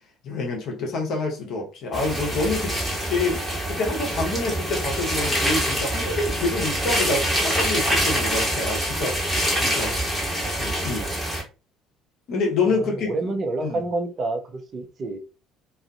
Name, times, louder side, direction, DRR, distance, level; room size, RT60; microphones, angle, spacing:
voice 1, 0.2-2.7 3.1-9.2 9.5-10.0 10.6-11.1 12.3-13.1 13.6-13.8, left 3 dB, 55° left, 0.8 m, -27 dB
sound 1, 1.9-11.4, equal, 5° right, 1.4 m, -25 dB
voice 2, 12.7-15.2, right 2 dB, 45° right, 0.4 m, -28 dB
2.3 x 2.3 x 2.2 m
figure-of-eight pair, 55°, 0 cm